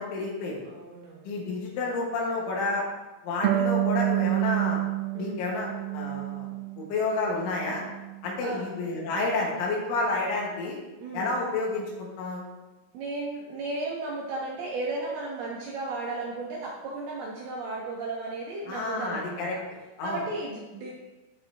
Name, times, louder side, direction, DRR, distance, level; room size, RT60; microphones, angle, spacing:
voice 1, 0.0-0.6 1.3-2.9 3.2-4.8 5.2-7.8 8.2-10.8 11.1-12.4 18.7-19.6 20.0-20.2, left 3 dB, 75° left, -3 dB, 4.0 m, -30 dB
voice 2, 0.7-1.5 5.1-5.5 8.4-8.7 11.0-11.3 12.9-19.6 20.0-20.9, right 3 dB, 70° right, -3 dB, 2.4 m, -35 dB
Harp, 3.4-6.8 7.2-8.2, right 14 dB, 90° right, 3.2 m, -28 dB
15.5 x 5.9 x 3.0 m, 1.1 s
omnidirectional pair, 5.8 m